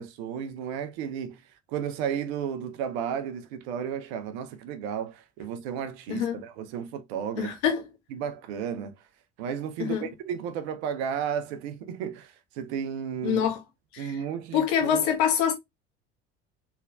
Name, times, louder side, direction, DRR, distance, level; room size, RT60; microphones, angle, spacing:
voice 1, 0.0-1.4 1.7-7.5 8.1-9.0 9.4-13.4 14.0-15.1, right 8 dB, 65° right, 0.8 m, -33 dB
voice 2, 7.4-7.9 9.8-10.1 13.2-13.6 13.9-14.2 14.5-15.5, left 8 dB, 60° left, 1.6 m, -25 dB
4.3 x 3.5 x 2.4 m
figure-of-eight pair, 60°, 34 cm